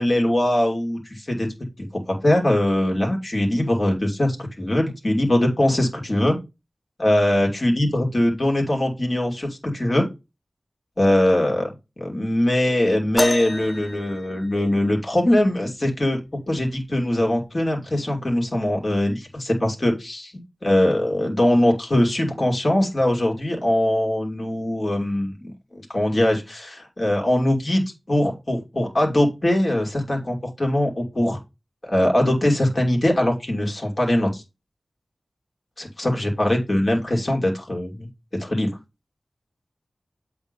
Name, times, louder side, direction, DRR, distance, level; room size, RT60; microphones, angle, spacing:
voice 1, 0.0-1.5 1.8-6.4 7.0-10.1 11.0-11.7 12.0-16.2 16.5-20.3 20.6-31.4 31.8-34.4 35.8-38.1 38.4-38.7, left 1 dB, 45° left, 0 dB, 2.7 m, -21 dB
sound 1, 13.2-15.1 16.7-16.8 17.6-17.8 18.8-18.9, left 1 dB, 20° left, 0.8 m, -28 dB
8.3 x 3.6 x 5.3 m, 0.24 s
wide cardioid pair, 60°, 0 cm